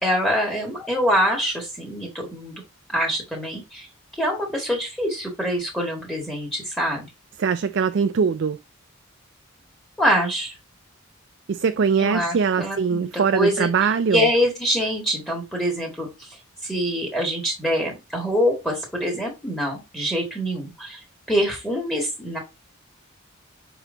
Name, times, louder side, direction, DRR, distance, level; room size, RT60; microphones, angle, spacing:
voice 1, 0.0-2.6 2.9-3.9 4.2-7.1 10.0-10.6 12.0-13.7 14.1-22.4, equal, 5° left, 1.7 m, -25 dB
voice 2, 7.4-8.6 11.5-14.3, right 6 dB, 55° right, 0.4 m, -22 dB
6.3 x 4.0 x 3.9 m
head